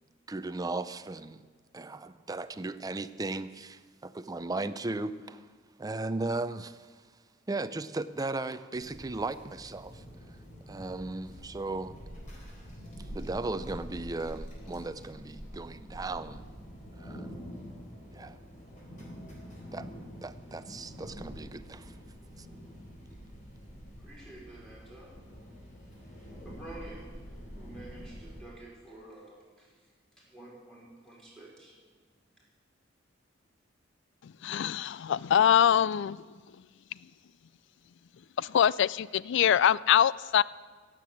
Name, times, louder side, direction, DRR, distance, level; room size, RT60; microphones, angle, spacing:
voice 1, 0.3-1.5 1.7-5.5 5.8-6.9 7.5-10.0 10.7-12.0 13.1-16.4 17.0-17.3 18.1-18.4 19.7-19.9 20.2-21.9 22.4-22.5, right 2 dB, 20° right, 0.5 m, -36 dB
sound 1, 8.7-28.4, equal, 40° left, 4.0 m, -46 dB
voice 2, 24.0-25.1 26.4-27.0 27.6-29.7 30.2-31.7, right 2 dB, 5° left, 5.0 m, -49 dB
voice 3, 34.2-36.2 38.4-40.4, left 9 dB, 65° left, 0.3 m, -24 dB
15.5 x 7.7 x 8.5 m
head